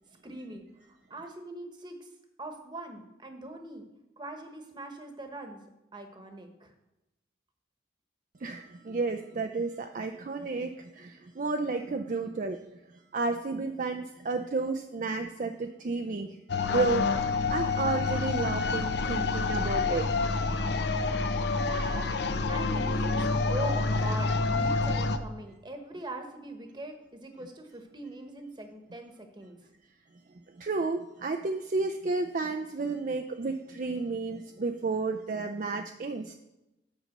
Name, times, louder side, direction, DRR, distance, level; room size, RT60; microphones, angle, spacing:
voice 1, 0.2-0.7 1.1-2.1 2.4-3.8 4.2-5.6 5.9-6.7 21.6-22.1 22.5-29.6, right 2 dB, 25° right, 5 dB, 1.1 m, -41 dB
voice 2, 8.4-12.6 13.1-16.4 16.7-17.1 17.5-20.2 30.5-36.3, right 3 dB, 45° right, 6 dB, 0.4 m, -32 dB
sound 1, 16.5-25.2, left 3 dB, 60° left, 0.6 m, -28 dB
8.9 x 5.4 x 6.5 m, 0.95 s
head